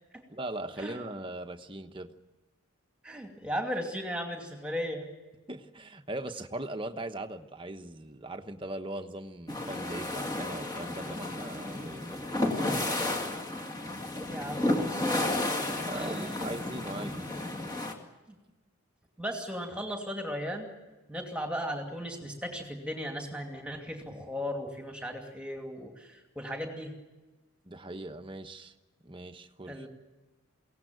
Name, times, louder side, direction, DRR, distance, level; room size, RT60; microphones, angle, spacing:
voice 1, 0.3-2.1 5.5-13.3 15.8-17.3 27.6-28.7 29.0-29.9, right 1 dB, 25° right, 6 dB, 1.1 m, -40 dB
voice 2, 3.0-5.1 14.3-15.5 15.9-16.5 18.3-18.4 19.2-20.7 21.1-26.9 29.7-29.9, equal, 5° right, 2 dB, 2.6 m, -36 dB
sound 1, 9.5-17.9, left 1 dB, 15° left, 2.2 m, -32 dB
22.5 x 17.5 x 9.3 m, 1.1 s
head